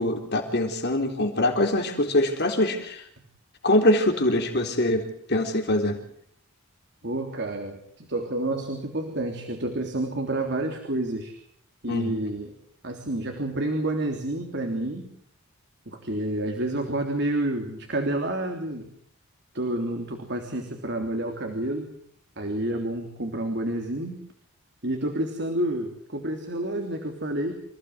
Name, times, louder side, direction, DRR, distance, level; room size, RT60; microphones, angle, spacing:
voice 1, 0.0-3.1 3.6-6.0 11.9-12.1, left 1 dB, 50° left, 4 dB, 3.8 m, -23 dB
voice 2, 7.0-11.4 11.8-12.5 12.8-15.1 15.8-18.9 19.5-21.9 22.4-24.2 24.8-27.5, right 1 dB, 50° right, 4 dB, 3.3 m, -29 dB
27.0 x 17.0 x 7.9 m, 0.64 s
head